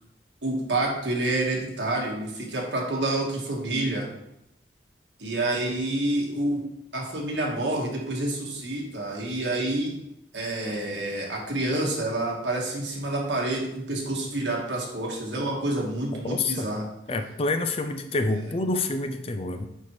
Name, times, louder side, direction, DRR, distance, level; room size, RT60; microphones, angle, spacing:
voice 1, 0.4-4.0 5.2-6.6 6.9-9.9 10.3-16.8, right 2 dB, 80° right, -1 dB, 1.6 m, -28 dB
voice 2, 16.2-16.7 17.1-19.7, left 2 dB, 30° left, 7 dB, 0.5 m, -27 dB
9.0 x 4.4 x 3.2 m, 0.84 s
head